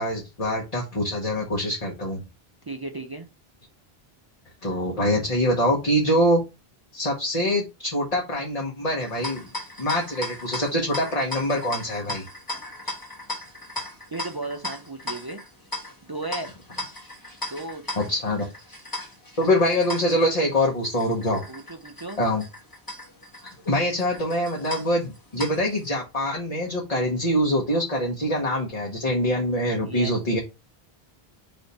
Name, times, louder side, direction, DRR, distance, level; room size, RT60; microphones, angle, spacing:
voice 1, 0.0-2.2 4.6-6.4 6.9-9.4 9.8-12.2 18.0-18.5 19.4-21.4 22.2-22.4 23.7-30.4, equal, 40° left, -1 dB, 1.1 m, -24 dB
voice 2, 2.6-3.3 14.1-15.4 16.1-16.5 17.5-17.9 21.5-22.2 29.8-30.2, right 2 dB, 35° right, 3 dB, 0.4 m, -34 dB
sound 1, 9.0-25.9, left 2 dB, 20° left, 1.1 m, -37 dB
3.5 x 3.5 x 4.0 m, 0.26 s
omnidirectional pair, 1.0 m